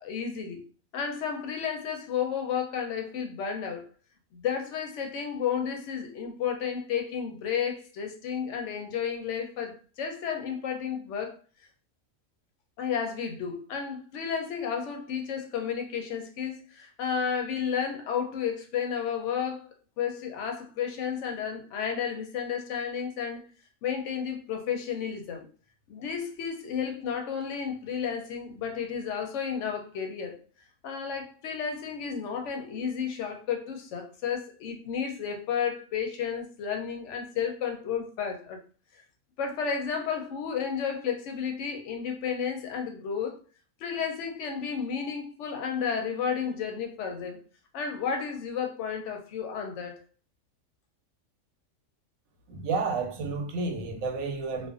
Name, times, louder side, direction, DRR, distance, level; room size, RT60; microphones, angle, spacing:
voice 1, 0.0-0.6 0.9-3.9 4.3-11.4 12.8-19.7 20.0-23.4 23.8-25.4 25.9-30.4 30.8-38.6 39.4-43.4 43.8-47.4 47.7-50.0, left 7 dB, 70° left, 0.8 m, -32 dB
voice 2, 52.5-54.7, right 4 dB, 80° right, 1.0 m, -31 dB
2.4 x 2.2 x 2.4 m
omnidirectional pair, 1.5 m